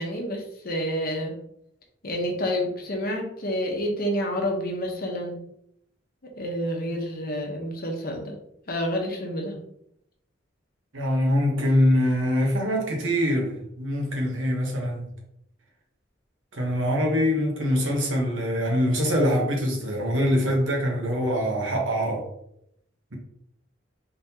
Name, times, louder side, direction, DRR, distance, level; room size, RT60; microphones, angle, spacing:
voice 1, 0.0-1.3 2.0-5.4 6.4-8.4 8.7-9.6, equal, 50° left, 0.9 m, -29 dB
voice 2, 10.9-15.1 16.5-22.3, equal, 80° right, 1.2 m, -24 dB
3.7 x 3.7 x 2.8 m
head